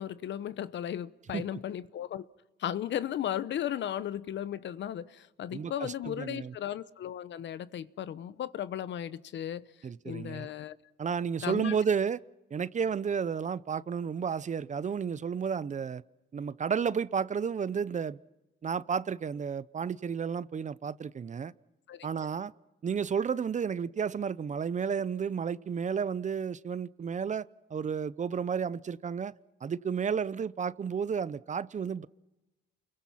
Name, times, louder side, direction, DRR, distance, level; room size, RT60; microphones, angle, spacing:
voice 1, 0.0-2.2 2.6-9.7 10.0-10.8 11.4-11.7 21.9-22.1, left 10 dB, 65° left, 1.0 m, -35 dB
voice 2, 5.5-6.5 9.8-10.5 11.0-12.2 12.5-16.0 16.3-18.2 18.6-21.5 22.0-22.5 22.8-29.3 29.6-32.1, right 6 dB, 35° right, 0.7 m, -32 dB
29.0 x 22.5 x 5.8 m
cardioid pair, 90°, 20 cm